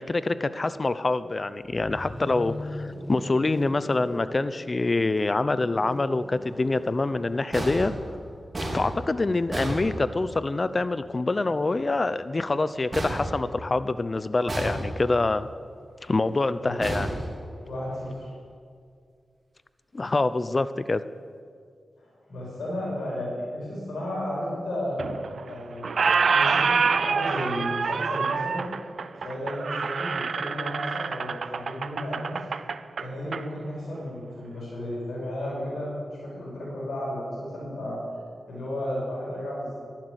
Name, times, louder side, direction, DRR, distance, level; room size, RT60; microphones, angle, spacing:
voice 1, 0.0-7.9 8.7-15.5 16.0-17.1 19.9-21.0, left 2 dB, 40° left, 14 dB, 0.6 m, -26 dB
sound 1, 1.6-13.6 14.8-18.4, left 1 dB, 15° left, 1.4 m, -42 dB
sound 2, 7.5-10.6 12.9-14.0 14.5-15.3 16.8-17.9, right 1 dB, 40° right, 4.0 m, -33 dB
voice 2, 16.6-17.0 17.6-18.3 22.0-25.2 25.4-25.9 26.2-28.7 29.1-32.5 33.0-38.0 38.5-39.8, left 1 dB, 80° left, -5 dB, 5.1 m, -33 dB
Squeak, 25.0-25.5 25.8-33.4, right 5 dB, 70° right, 0.5 m, -26 dB
11.5 x 11.5 x 8.0 m, 2.1 s
cardioid pair, 50°, 0 cm